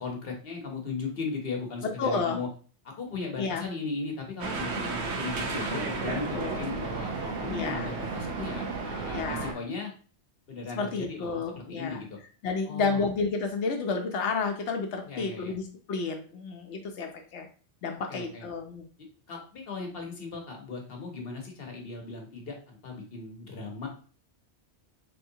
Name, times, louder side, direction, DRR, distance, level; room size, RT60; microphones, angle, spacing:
voice 1, 0.0-2.5 2.8-9.9 10.5-12.2 12.7-13.1 15.0-15.6 18.1-18.5 19.3-23.9, left 4 dB, 60° left, 1 dB, 1.0 m, -37 dB
voice 2, 1.8-2.4 3.4-3.6 4.7-4.9 6.3-6.7 7.5-7.9 9.1-9.6 10.8-12.0 12.4-17.5 17.8-18.8, left 4 dB, 85° left, 3 dB, 0.9 m, -31 dB
sound 1, 4.4-9.5, right 4 dB, 75° right, 1.0 m, -33 dB
3.7 x 3.1 x 2.7 m, 0.39 s
omnidirectional pair, 1.1 m